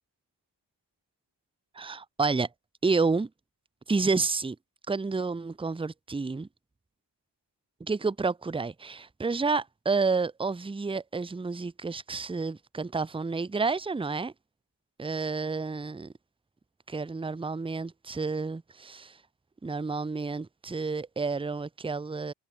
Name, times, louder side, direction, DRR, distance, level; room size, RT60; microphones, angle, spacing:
voice 1, 1.7-2.5 2.8-3.3 3.9-4.6 4.9-6.5 7.8-14.3 15.0-16.1 16.9-19.2 19.6-22.3, right 4 dB, 15° right, 0.6 m, -30 dB
wide cardioid pair, 135°, 43 cm